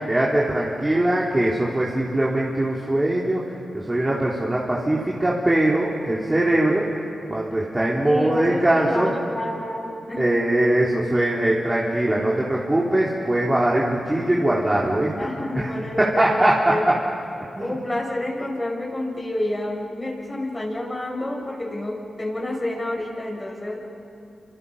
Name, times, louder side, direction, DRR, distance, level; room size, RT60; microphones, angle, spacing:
voice 1, 0.1-3.4 3.7-6.9 7.3-9.1 10.2-15.1 15.6-15.7 16.2-16.9 17.5-17.7, right 1 dB, 25° right, -5 dB, 3.9 m, -21 dB
voice 2, 8.0-10.2 15.2-16.8 17.6-23.8, left 1 dB, 30° left, -1 dB, 7.9 m, -29 dB
28.5 x 26.5 x 5.8 m, 2.7 s
cardioid pair, 45°, 0 cm